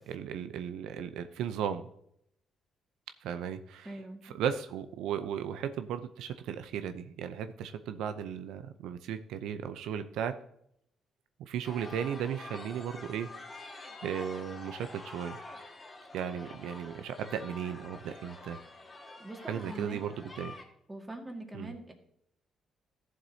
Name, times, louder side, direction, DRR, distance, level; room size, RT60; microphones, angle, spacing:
voice 1, 0.1-1.9 3.2-3.9 4.2-10.4 11.4-13.3 14.0-15.4 16.1-18.6 19.5-20.5 21.5-21.7, right 8 dB, 90° right, 10 dB, 0.5 m, -36 dB
voice 2, 3.8-4.2 19.2-20.0 20.9-21.9, right 2 dB, 15° right, 3 dB, 1.9 m, -43 dB
sound 1, 11.6-20.6, left 2 dB, 25° left, 2.3 m, -47 dB
14.0 x 7.4 x 2.7 m, 0.73 s
cardioid pair, 90°, 0 cm